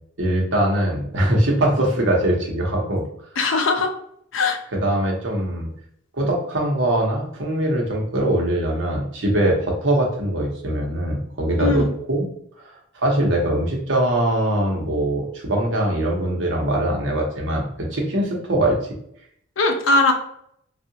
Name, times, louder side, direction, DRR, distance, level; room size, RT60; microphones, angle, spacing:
voice 1, 0.2-3.0 4.7-5.7 6.1-12.3 12.9-17.6 17.9-18.8, right 1 dB, 65° right, -1 dB, 0.9 m, -22 dB
voice 2, 3.4-3.9 4.3-4.6 11.6-11.9 19.6-20.1, left 3 dB, 75° left, 5 dB, 0.5 m, -19 dB
3.5 x 2.4 x 2.8 m, 0.70 s
head